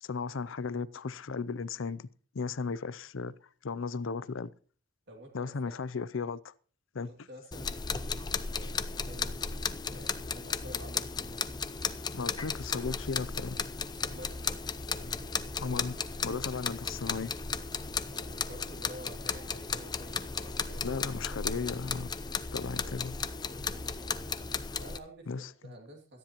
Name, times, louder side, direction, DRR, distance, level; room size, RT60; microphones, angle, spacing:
voice 1, 0.0-2.1 2.3-3.3 3.6-4.5 5.3-6.5 6.9-7.1 12.1-13.6 15.6-17.3 20.8-22.1 22.5-23.2 25.3-25.7, left 4 dB, 70° left, 0.6 m, -35 dB
voice 2, 5.1-5.8 7.0-11.4 14.0-14.7 14.9-15.2 18.1-20.8 21.2-21.5 23.6-23.9 24.8-26.2, right 1 dB, 55° right, 2.6 m, -50 dB
sound 1, 7.5-25.0, left 5 dB, 20° left, 0.5 m, -35 dB
sound 2, 14.1-24.5, right 1 dB, 25° right, 3.4 m, -57 dB
17.5 x 13.0 x 3.0 m
head